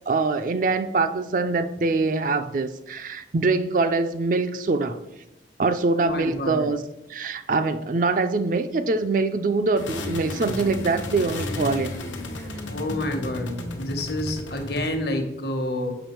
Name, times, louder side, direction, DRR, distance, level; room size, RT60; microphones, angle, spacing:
voice 1, 0.1-5.0 5.6-6.8 7.1-11.9, right 3 dB, 45° right, 9 dB, 0.4 m, -24 dB
voice 2, 6.0-6.7 12.7-15.9, left 1 dB, 60° left, 4 dB, 1.1 m, -29 dB
sound 1, 9.8-14.9, left 2 dB, 90° left, 1.0 m, -33 dB
7.0 x 5.5 x 4.4 m, 0.92 s
head